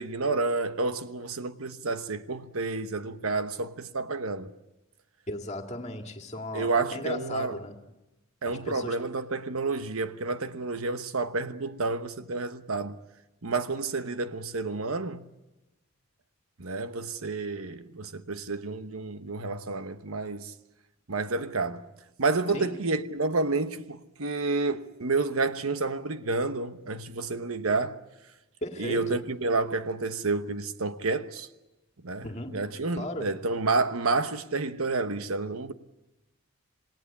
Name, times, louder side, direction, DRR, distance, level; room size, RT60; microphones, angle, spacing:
voice 1, 0.0-4.5 6.5-7.5 8.4-13.0 13.4-15.3 16.6-20.5 21.1-21.9 22.2-28.0 28.8-31.5 32.0-32.3 32.5-35.7, right 3 dB, 80° right, 1.1 m, -30 dB
voice 2, 5.3-7.8 8.5-9.0 22.5-22.8 28.6-29.2 32.2-32.7 32.9-33.3, left 1 dB, 30° left, 2.1 m, -36 dB
27.5 x 18.0 x 8.6 m
head